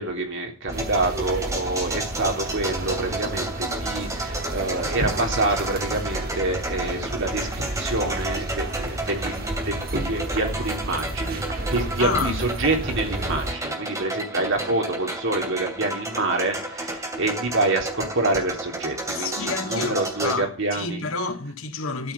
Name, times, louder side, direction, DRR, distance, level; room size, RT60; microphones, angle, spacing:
voice 1, 0.0-21.0, right 2 dB, 65° right, 3.5 m, -27 dB
sound 1, 0.7-20.4, right 2 dB, 15° right, 2.8 m, -32 dB
sound 2, 0.7-13.5, right 1 dB, 45° right, 1.6 m, -32 dB
voice 2, 12.0-12.4 19.1-22.1, left 4 dB, 75° left, 1.9 m, -29 dB
13.0 x 6.4 x 8.9 m
head